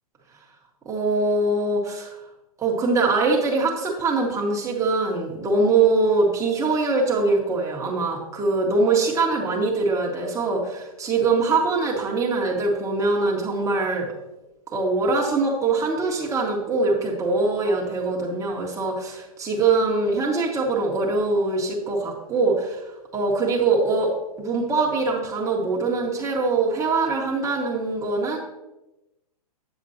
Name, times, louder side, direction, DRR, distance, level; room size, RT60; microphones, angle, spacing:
voice 1, 0.9-2.2 2.6-14.1 14.7-22.8 23.1-24.1 24.4-28.4, right 3 dB, 15° right, -2 dB, 1.7 m, -23 dB
7.9 x 7.3 x 2.9 m, 0.97 s
hypercardioid pair, 125°, 20 cm